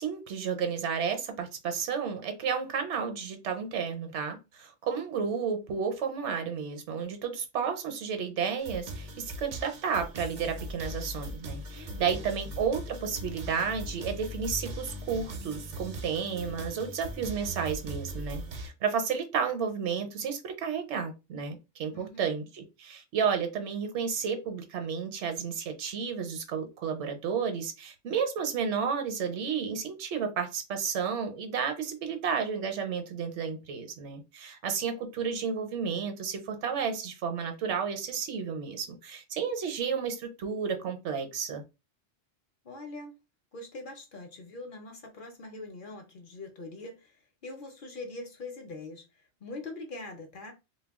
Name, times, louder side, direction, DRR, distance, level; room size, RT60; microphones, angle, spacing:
voice 1, 0.0-41.6, right 6 dB, 75° right, 1.0 m, -32 dB
sound 1, 8.6-18.7, right 1 dB, 55° right, 0.6 m, -40 dB
voice 2, 11.7-12.4 21.9-22.3 42.6-43.2 43.5-50.5, left 2 dB, 55° left, 0.7 m, -43 dB
2.3 x 2.2 x 3.5 m
omnidirectional pair, 1.2 m